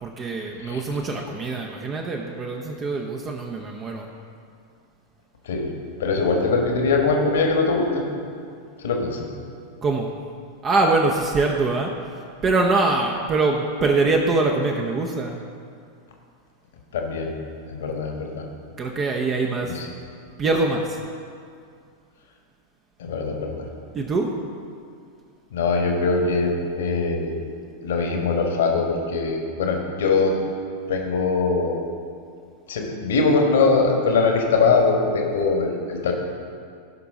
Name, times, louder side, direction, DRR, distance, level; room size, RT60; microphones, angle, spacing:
voice 1, 0.0-4.1 9.8-10.1 10.6-11.9 12.4-15.4 18.8-19.8 20.4-21.0 23.9-24.3, right 3 dB, 25° right, 1 dB, 0.9 m, -23 dB
voice 2, 6.0-8.0 8.8-9.2 16.9-17.4 17.7-18.5 19.6-19.9 23.0-23.6 25.5-27.4 27.8-30.3 30.9-31.8 32.7-36.1, left 4 dB, 60° left, 2 dB, 1.5 m, -22 dB
17.5 x 5.8 x 3.8 m, 2.3 s
figure-of-eight pair, 90°, 0 cm